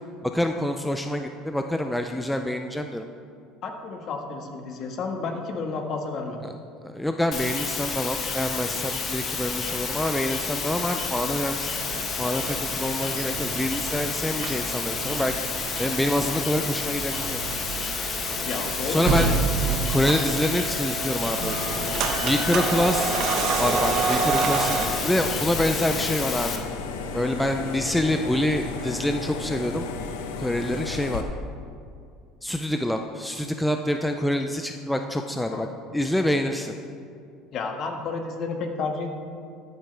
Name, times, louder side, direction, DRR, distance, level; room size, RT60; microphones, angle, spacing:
voice 1, 0.2-3.0 6.4-6.5 6.8-11.8 12.2-15.3 15.8-17.4 18.9-19.4 19.9-21.6 22.2-23.2 23.6-26.6 27.1-29.9 30.4-31.2 32.4-35.7 35.9-36.7, left 1 dB, 5° left, 5 dB, 0.4 m, -26 dB
voice 2, 3.6-6.4 18.4-19.3 35.5-35.7 37.5-39.1, left 4 dB, 50° left, 3 dB, 1.4 m, -31 dB
sound 1, 7.3-26.6, left 5 dB, 35° left, 1.2 m, -30 dB
sound 2, 11.8-24.9, right 5 dB, 55° right, 1.1 m, -29 dB
sound 3, 21.4-31.2, left 4 dB, 90° left, 0.8 m, -34 dB
14.0 x 8.1 x 3.3 m, 2.3 s
supercardioid pair, 115°, 0 cm